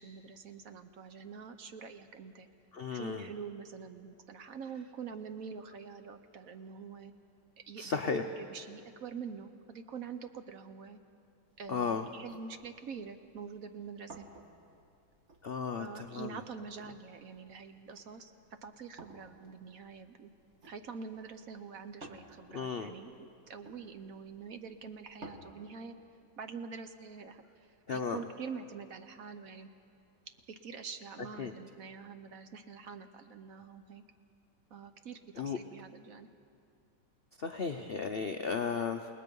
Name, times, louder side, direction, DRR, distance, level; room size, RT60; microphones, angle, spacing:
voice 1, 0.0-2.5 2.9-7.1 7.7-8.0 8.4-11.0 11.6-14.2 15.8-18.3 18.6-20.3 20.6-26.0 26.4-29.7 30.5-34.0 34.7-36.3, right 5 dB, 60° right, 8 dB, 1.1 m, -45 dB
voice 2, 2.7-3.3 7.8-8.3 11.7-12.1 15.4-16.4 22.5-22.9 27.9-28.2 31.4-31.5 35.3-35.6 37.4-39.1, left 5 dB, 60° left, 6 dB, 0.6 m, -34 dB
sound 1, 11.5-25.3, right 2 dB, 40° right, 2.0 m, -58 dB
29.0 x 19.0 x 5.4 m, 2.4 s
omnidirectional pair, 1.9 m